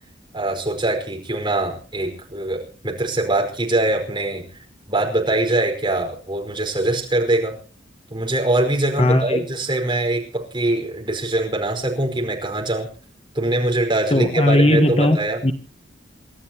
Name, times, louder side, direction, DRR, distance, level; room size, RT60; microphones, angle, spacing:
voice 1, 0.3-4.4 4.9-7.6 8.1-12.9 13.3-15.4, right 2 dB, 25° right, 2 dB, 5.1 m, -23 dB
voice 2, 9.0-9.4 14.1-15.2 15.4-15.5, left 1 dB, 35° left, 7 dB, 1.5 m, -17 dB
28.5 x 13.0 x 3.0 m, 0.37 s
head